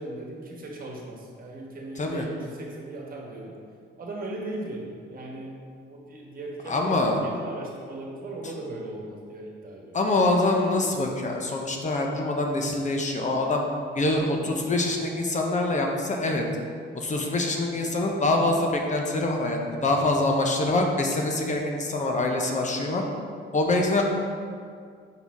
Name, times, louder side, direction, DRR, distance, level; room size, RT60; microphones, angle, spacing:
voice 1, 0.0-3.6 4.0-5.6 5.9-10.0 19.8-20.1, right 2 dB, 45° right, -1 dB, 1.3 m, -38 dB
voice 2, 6.7-7.2 9.9-13.6 14.0-16.4 16.9-23.0 23.5-24.0, left 2 dB, 35° left, 1 dB, 0.8 m, -25 dB
5.6 x 4.0 x 4.7 m, 2.2 s
cardioid pair, 90°, 20 cm